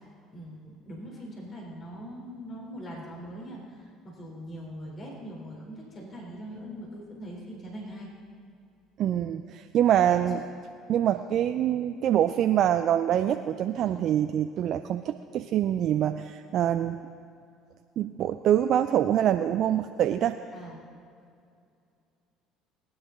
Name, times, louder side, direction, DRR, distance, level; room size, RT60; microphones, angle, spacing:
voice 1, 0.3-8.1 9.9-10.3 20.5-20.8, equal, 45° left, -3 dB, 3.6 m, -42 dB
voice 2, 9.0-10.4 10.9-17.0 18.0-20.4, right 10 dB, 55° right, 8 dB, 0.4 m, -25 dB
19.0 x 10.0 x 3.8 m, 2.4 s
hypercardioid pair, 65°, 0 cm